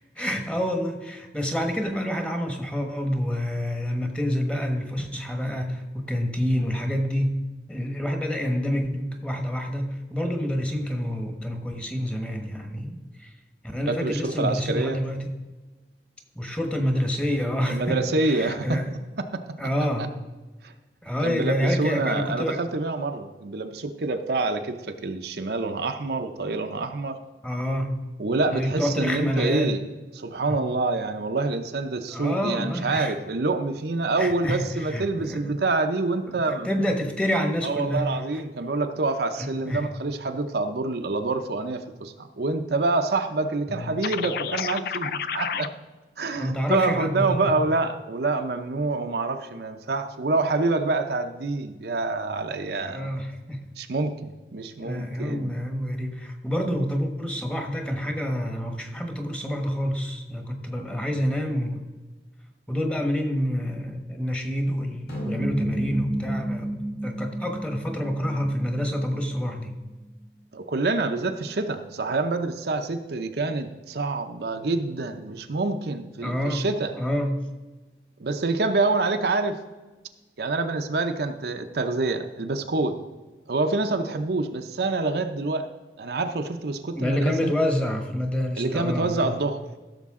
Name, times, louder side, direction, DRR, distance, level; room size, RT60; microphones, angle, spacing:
voice 1, 0.1-7.4 7.7-13.3 13.6-15.3 16.3-18.9 19.6-20.1 21.0-22.6 27.4-28.0 28.5-29.8 30.5-30.6 32.1-33.1 34.2-35.5 36.3-38.1 39.4-39.9 43.7-44.0 46.3-47.6 52.8-53.6 54.8-61.8 62.7-66.7 67.0-69.7 76.2-76.7 76.9-77.5 87.0-89.4, equal, 5° left, 4 dB, 1.1 m, -28 dB
voice 2, 13.9-15.0 17.7-18.8 19.3-19.6 20.0-20.1 20.6-20.7 21.2-27.2 28.2-29.8 30.1-36.7 37.6-45.7 46.2-53.1 53.8-55.5 70.5-76.9 78.2-79.6 80.4-83.0 83.5-85.7 86.0-87.5 88.6-89.6, right 3 dB, 60° right, 6 dB, 0.7 m, -27 dB
sound 1, 44.0-45.7, left 7 dB, 55° left, 0.4 m, -30 dB
sound 2, 65.1-69.7, right 1 dB, 70° left, 3.9 m, -31 dB
15.5 x 6.7 x 3.7 m, 1.2 s
head